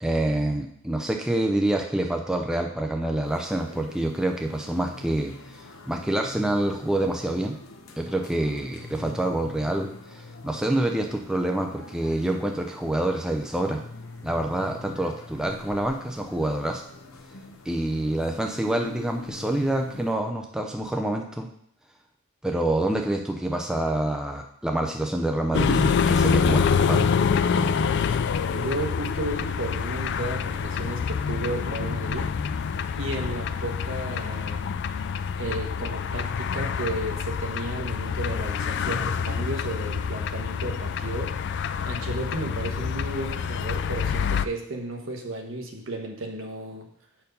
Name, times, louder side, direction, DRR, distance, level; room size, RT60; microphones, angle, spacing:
voice 1, 0.0-5.3 5.9-7.6 8.0-13.8 14.2-16.8 17.7-21.5 22.4-27.1, right 1 dB, 5° right, 2 dB, 0.5 m, -27 dB
sound 1, 3.2-20.1, left 3 dB, 75° left, 0.8 m, -44 dB
sound 2, 25.5-44.5, left 6 dB, 55° left, 0.3 m, -26 dB
voice 2, 28.5-32.3 33.0-34.7 35.4-41.4 41.8-46.9, right 2 dB, 65° right, 3 dB, 1.1 m, -33 dB
6.9 x 4.4 x 5.3 m, 0.70 s
head